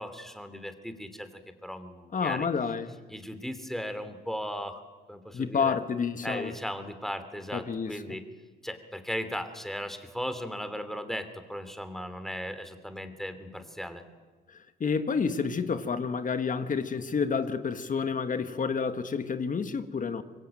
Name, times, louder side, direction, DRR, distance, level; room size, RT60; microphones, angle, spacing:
voice 1, 0.0-2.5 3.1-4.8 5.1-5.8 6.2-8.2 8.6-14.0, equal, ahead, 3.1 m, -37 dB
voice 2, 2.1-3.0 5.3-6.5 7.5-8.0 14.5-20.2, left 5 dB, 40° left, 1.7 m, -29 dB
25.0 x 22.5 x 9.2 m
cardioid pair, 90°, 20 cm